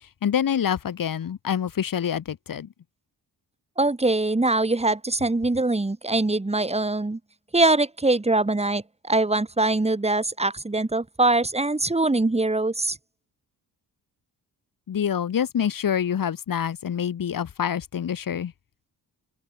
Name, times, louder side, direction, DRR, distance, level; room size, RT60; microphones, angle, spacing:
voice 1, 0.2-2.7 14.9-18.5, left 8 dB, 60° left, 2.8 m, -26 dB
voice 2, 3.8-7.2 7.5-13.0, right 2 dB, 15° right, 6.8 m, -23 dB
open air
cardioid pair, 120°, 39 cm